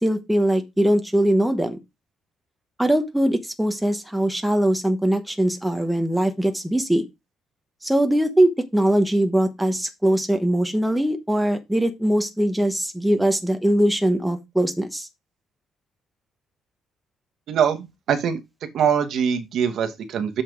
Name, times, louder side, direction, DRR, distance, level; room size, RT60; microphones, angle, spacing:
voice 1, 0.0-1.8 2.8-7.0 7.8-15.1, right 1 dB, 5° right, 0.9 m, -21 dB
voice 2, 17.5-18.4 18.7-20.4, right 7 dB, 60° right, 1.3 m, -23 dB
6.8 x 5.8 x 4.5 m
cardioid pair, 165°, 0 cm